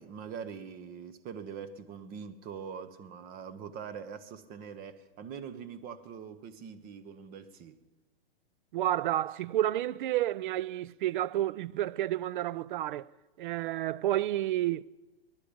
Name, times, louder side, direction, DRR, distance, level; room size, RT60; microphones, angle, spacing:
voice 1, 0.0-7.8, right 7 dB, 30° right, 1.0 m, -43 dB
voice 2, 8.7-13.1 13.4-14.8, right 13 dB, 55° right, 0.5 m, -30 dB
20.0 x 10.5 x 5.2 m
hypercardioid pair, 120°, 30 cm